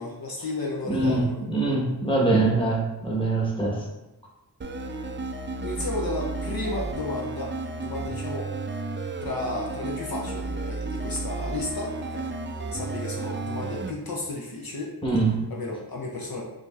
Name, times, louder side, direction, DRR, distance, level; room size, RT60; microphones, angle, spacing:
voice 1, 0.0-1.4 5.6-8.5 9.2-12.3 12.7-14.9 15.5-16.4, left 2 dB, 65° left, -2 dB, 0.6 m, -33 dB
voice 2, 0.9-3.8 15.0-15.5, right 2 dB, 15° left, -4 dB, 1.1 m, -23 dB
sound 1, 4.6-13.9, right 3 dB, 30° right, 0.4 m, -33 dB
4.9 x 2.7 x 2.4 m, 1.0 s
wide cardioid pair, 55°, 39 cm